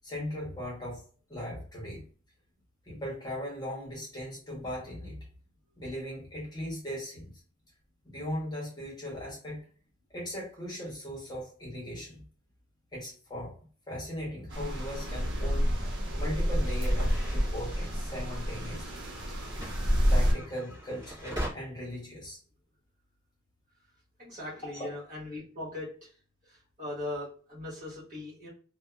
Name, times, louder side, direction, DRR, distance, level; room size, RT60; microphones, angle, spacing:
voice 1, 0.0-1.0 1.3-2.0 2.8-5.2 5.8-7.3 8.0-9.6 10.1-12.2 12.9-13.5 13.9-15.7 16.1-19.0 19.3-19.4 20.1-22.4 24.6-24.9, equal, 20° left, -4 dB, 0.9 m, -38 dB
sound 1, 14.5-20.3, equal, 60° right, 0.8 m, -29 dB
sound 2, 15.6-21.5, equal, 20° right, 1.3 m, -43 dB
voice 2, 24.2-26.1 26.5-28.5, left 1 dB, 40° right, -7 dB, 1.4 m, -39 dB
2.6 x 2.2 x 2.2 m, 0.41 s
head